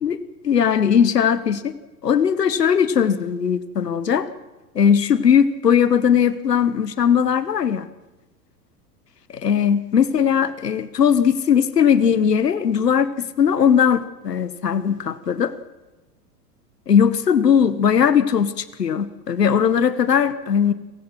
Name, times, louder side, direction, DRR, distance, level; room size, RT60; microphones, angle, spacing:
voice 1, 0.4-1.7 2.0-4.3 4.7-7.9 9.3-15.5 16.9-20.7, left 7 dB, 75° left, 15 dB, 1.4 m, -19 dB
29.5 x 16.5 x 6.1 m, 1.1 s
figure-of-eight pair, 95°, 48 cm